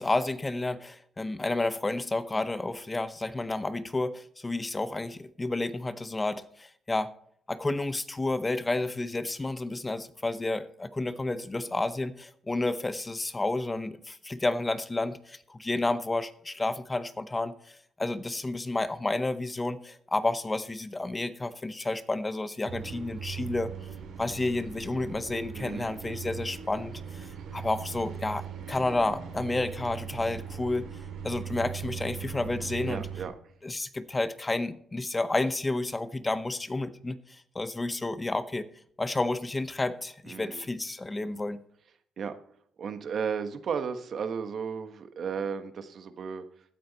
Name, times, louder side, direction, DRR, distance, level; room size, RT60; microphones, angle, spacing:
voice 1, 0.0-7.1 7.5-23.7 24.2-30.9 31.2-33.1 33.6-38.7 39.0-41.6, left 2 dB, 20° left, 13 dB, 0.8 m, -31 dB
sound 1, 22.7-33.3, right 8 dB, 75° right, 3.1 m, -39 dB
voice 2, 25.5-25.9 32.8-33.3 40.3-40.6 42.2-42.3 42.8-46.4, right 6 dB, 55° right, 9 dB, 1.3 m, -34 dB
15.5 x 9.2 x 4.1 m, 0.64 s
cardioid pair, 90°, 0 cm